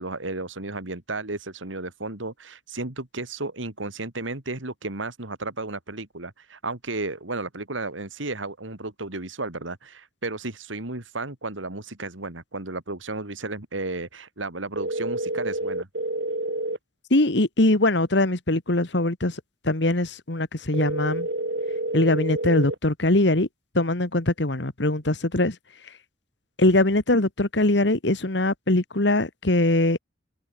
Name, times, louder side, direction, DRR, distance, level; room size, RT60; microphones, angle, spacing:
voice 1, 0.0-15.9, right 2 dB, 85° right, 3.0 m, -33 dB
sound 1, 14.8-16.8 20.7-22.8, right 1 dB, 60° right, 3.3 m, -28 dB
voice 2, 17.1-21.3 21.9-23.5 23.7-25.5 26.6-30.0, left 2 dB, 65° left, 1.8 m, -22 dB
head